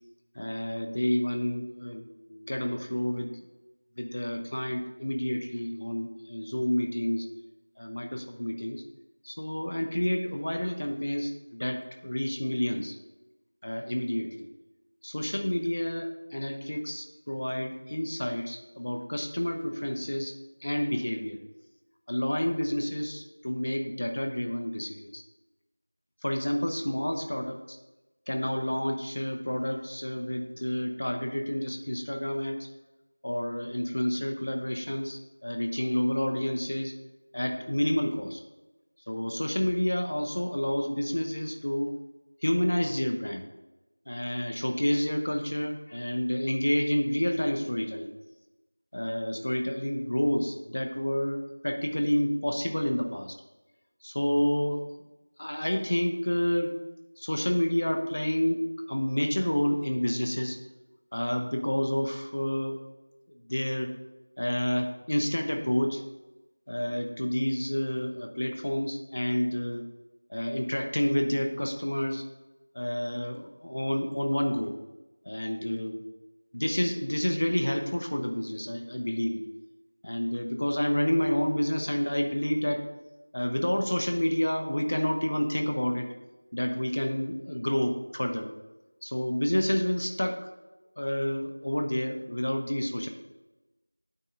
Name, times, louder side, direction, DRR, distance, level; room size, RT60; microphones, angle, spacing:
voice 1, 0.3-3.3 4.0-7.3 7.8-8.8 9.2-13.0 13.6-14.3 15.0-20.3 20.6-21.4 22.1-25.2 26.2-27.8 28.3-32.7 33.2-36.9 37.3-38.4 39.1-41.9 42.4-43.5 44.1-48.1 48.9-53.4 54.0-54.8 55.4-56.8 57.2-60.6 61.1-62.8 63.5-63.9 64.4-66.0 66.7-69.9 70.3-72.2 72.7-74.7 75.2-76.0 76.5-79.4 80.0-82.8 83.3-86.1 86.5-88.5 89.0-90.4 91.0-93.1, equal, 30° left, 4 dB, 0.6 m, -29 dB
9.0 x 3.6 x 5.5 m, 1.1 s
figure-of-eight pair, 175°, 0 cm